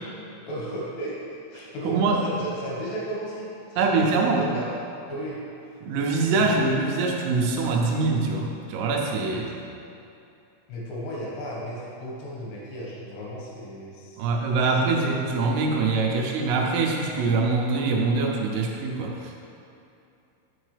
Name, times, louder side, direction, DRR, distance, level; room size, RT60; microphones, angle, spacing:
voice 1, 0.5-1.2 1.5-4.7 5.1-5.4 6.3-6.7 9.3-9.6 10.7-15.2, equal, 75° left, -5 dB, 3.7 m, -35 dB
voice 2, 1.9-2.2 3.8-4.5 5.8-9.5 14.2-19.4, right 3 dB, 85° right, 0 dB, 3.4 m, -24 dB
9.0 x 7.0 x 3.3 m, 2.7 s
omnidirectional pair, 6.0 m